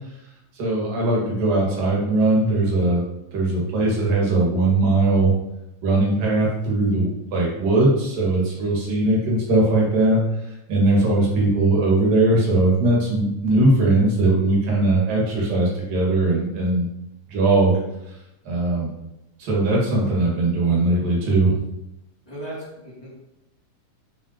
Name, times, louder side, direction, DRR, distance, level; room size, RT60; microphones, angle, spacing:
voice 1, 0.6-3.0 3.3-5.3 5.8-10.2 10.7-16.8 17.3-17.7 18.5-18.9 19.4-21.6, right 2 dB, 80° right, -4 dB, 4.0 m, -20 dB
voice 2, 22.3-23.2, right 1 dB, 5° left, -7 dB, 2.8 m, -36 dB
9.0 x 6.5 x 3.2 m, 0.89 s
omnidirectional pair, 3.9 m